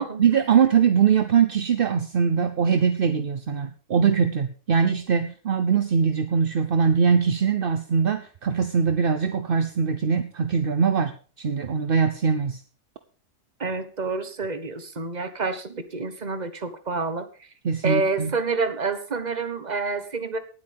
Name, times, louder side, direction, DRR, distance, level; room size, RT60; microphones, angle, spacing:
voice 1, 0.0-12.6 17.6-18.3, right 6 dB, 45° right, 10 dB, 0.8 m, -22 dB
voice 2, 13.6-17.5 17.8-20.4, right 4 dB, 30° right, 11 dB, 1.3 m, -28 dB
18.5 x 8.3 x 3.5 m, 0.38 s
omnidirectional pair, 1.7 m